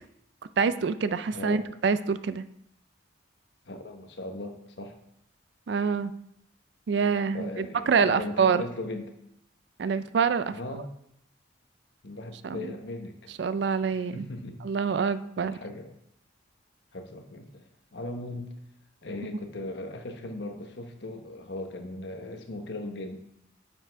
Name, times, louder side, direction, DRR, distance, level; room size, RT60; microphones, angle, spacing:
voice 1, 0.6-2.4 5.7-6.1 6.9-8.7 9.8-10.8 12.4-12.6 13.4-14.3 14.6-15.5, right 5 dB, 60° right, 13 dB, 0.4 m, -26 dB
voice 2, 1.3-1.7 3.6-5.0 7.3-9.1 10.5-10.9 12.0-13.3 13.9-14.6 15.4-15.9 16.9-18.5 19.0-23.1, left 2 dB, 60° left, 5 dB, 1.0 m, -38 dB
9.1 x 5.9 x 3.4 m, 0.75 s
head